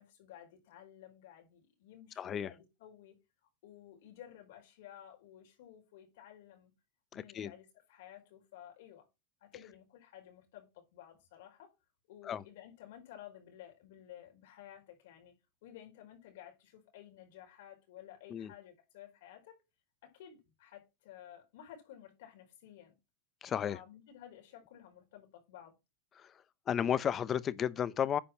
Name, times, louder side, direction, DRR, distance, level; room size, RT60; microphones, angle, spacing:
voice 1, 0.0-3.2 3.6-6.7 7.1-9.1 9.4-11.7 12.1-15.3 15.6-19.6 20.0-22.9 23.6-25.7, left 11 dB, 70° left, 5.4 m, -54 dB
voice 2, 2.2-2.5 7.1-7.5 12.2-12.4 18.3-18.5 23.4-23.8 26.2-26.3 26.7-28.2, left 9 dB, 25° left, 0.6 m, -33 dB
10.0 x 5.1 x 6.0 m
supercardioid pair, 155°, 0 cm